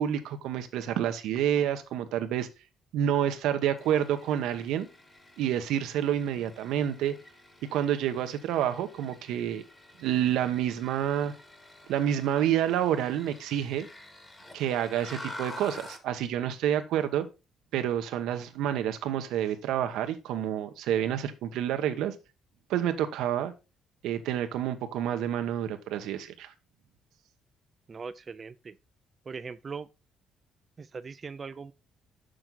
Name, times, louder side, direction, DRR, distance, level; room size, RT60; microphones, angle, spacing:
voice 1, 0.0-2.5 2.9-4.9 5.4-7.1 7.7-9.6 10.0-11.3 11.9-13.9 14.5-17.3 17.7-22.1 22.7-23.5 24.0-26.5, right 10 dB, 85° right, 1.0 m, -28 dB
sound 1, 3.8-16.1, left 1 dB, 15° left, 1.1 m, -48 dB
voice 2, 27.9-28.8 29.3-29.9 30.8-31.7, right 5 dB, 25° right, 0.3 m, -40 dB
6.4 x 6.0 x 3.8 m
cardioid pair, 170°, 0 cm